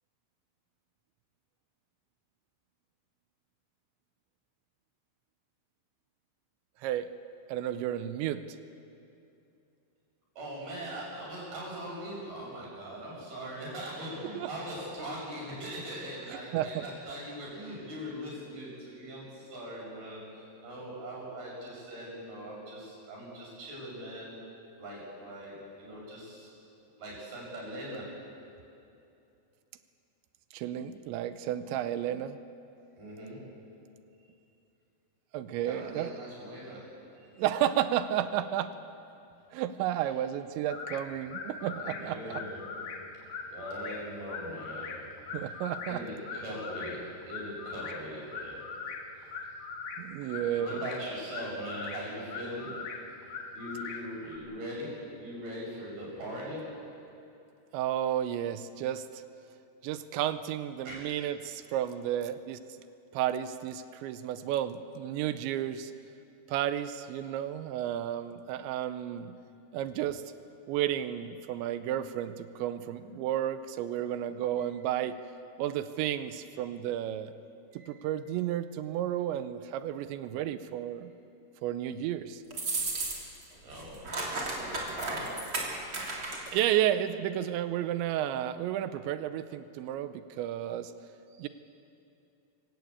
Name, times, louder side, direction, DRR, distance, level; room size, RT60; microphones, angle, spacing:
voice 1, 7.5-8.4 14.4-14.5 16.5-16.9 30.5-32.4 35.3-36.2 37.4-38.7 39.5-42.4 45.3-46.0 50.0-50.8 57.7-59.2 59.8-62.6 63.1-65.9 66.5-69.3 69.7-70.2 70.7-75.2 75.6-77.3 77.9-81.1 81.6-82.4 86.5-90.9 91.4-91.5, right 11 dB, 80° right, 12 dB, 2.9 m, -32 dB
voice 2, 10.4-24.4 24.8-26.5 27.0-28.1 33.0-33.7 35.6-37.3 41.8-42.8 43.5-45.0 45.9-48.6 50.5-53.0 53.5-56.9 60.9-61.0 77.7-78.0 83.6-85.7 91.3-91.5, equal, 55° right, -4 dB, 8.7 m, -41 dB
sound 1, 40.7-54.4, left 4 dB, 65° left, 3.3 m, -41 dB
sound 2, 82.5-83.4 83.7-86.6, right 3 dB, 30° right, 3.1 m, -34 dB
26.0 x 17.0 x 8.4 m, 2.7 s
omnidirectional pair, 5.4 m